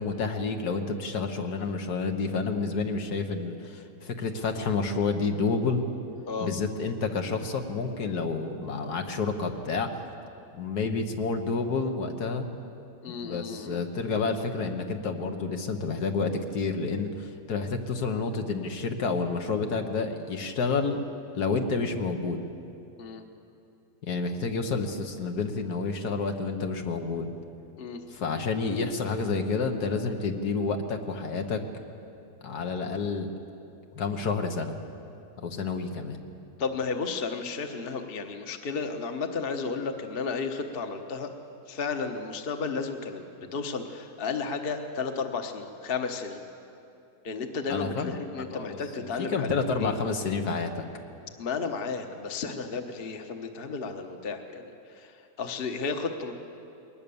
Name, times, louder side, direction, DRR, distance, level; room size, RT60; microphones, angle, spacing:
voice 1, 0.0-5.8 6.4-9.9 10.5-12.5 13.1-21.0 21.3-22.4 24.0-27.3 28.1-31.6 32.4-33.3 34.0-34.8 35.4-36.2 47.7-50.8, left 4 dB, 80° left, 5 dB, 1.8 m, -29 dB
voice 2, 13.0-13.8 23.0-23.3 27.8-28.0 36.6-41.3 41.7-46.4 47.2-49.9 51.4-56.3, left 4 dB, 40° left, 6 dB, 1.2 m, -33 dB
21.0 x 19.0 x 7.0 m, 2.7 s
omnidirectional pair, 1.7 m